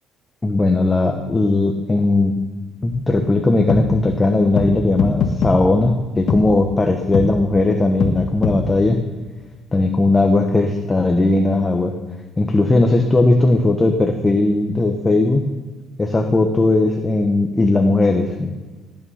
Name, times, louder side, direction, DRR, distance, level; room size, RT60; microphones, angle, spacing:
voice 1, 0.4-2.4 2.8-9.0 9.7-11.9 12.4-15.4 16.0-18.5, left 2 dB, 15° left, 4 dB, 1.1 m, -17 dB
sound 1, 2.9-3.0 3.7-3.8 4.6-4.7 5.0-5.6 6.3-6.4 7.1-7.3 8.0-8.1 8.4-8.6, left 5 dB, 55° left, 1.6 m, -19 dB
17.5 x 9.0 x 5.7 m, 1.3 s
cardioid pair, 135°, 0 cm